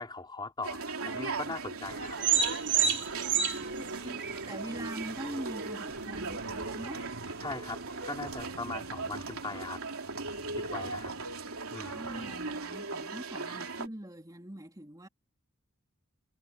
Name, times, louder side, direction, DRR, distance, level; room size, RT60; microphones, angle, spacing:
voice 1, 0.0-2.2 2.8-3.4 7.4-9.8 10.4-11.1 11.7-12.0, left 3 dB, 20° left, 3.1 m, -40 dB
sound 1, 0.6-13.9, right 3 dB, 85° right, 3.2 m, -38 dB
sound 2, 1.9-8.5, right 7 dB, 60° right, 3.0 m, -33 dB
voice 2, 3.5-7.1 11.9-15.1, right 1 dB, 15° right, 3.2 m, -43 dB
head